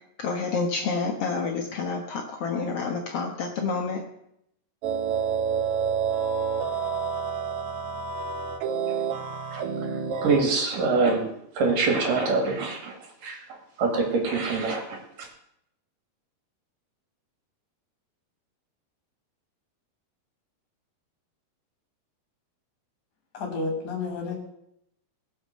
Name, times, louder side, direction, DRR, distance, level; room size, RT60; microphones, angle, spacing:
voice 1, 0.2-4.0, left 4 dB, 85° left, 2 dB, 1.3 m, -28 dB
sound 1, 4.8-10.4, right 6 dB, 75° right, 1.7 m, -28 dB
voice 2, 10.2-11.3 11.6-13.0 13.2-13.4 13.8-15.3, right 3 dB, 60° right, 3 dB, 3.5 m, -24 dB
voice 3, 23.3-24.4, left 3 dB, 50° left, 1 dB, 4.1 m, -30 dB
18.5 x 6.6 x 6.6 m, 0.76 s
omnidirectional pair, 4.7 m